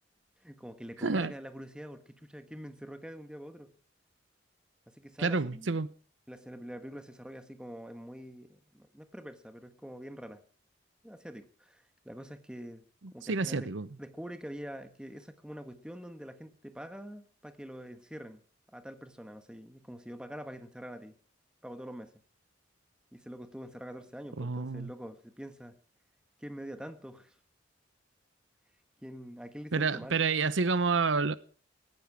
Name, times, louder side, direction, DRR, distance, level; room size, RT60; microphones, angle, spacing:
voice 1, 0.4-3.7 4.9-5.8 6.3-10.4 11.0-12.8 13.1-18.4 18.7-21.1 21.6-22.1 23.1-25.7 26.4-27.3 29.0-30.2, equal, 5° right, 1.3 m, -45 dB
voice 2, 1.0-1.3 5.2-5.9 13.3-13.9 24.4-24.9 29.7-31.4, right 4 dB, 75° right, 0.8 m, -29 dB
17.5 x 14.5 x 4.8 m
head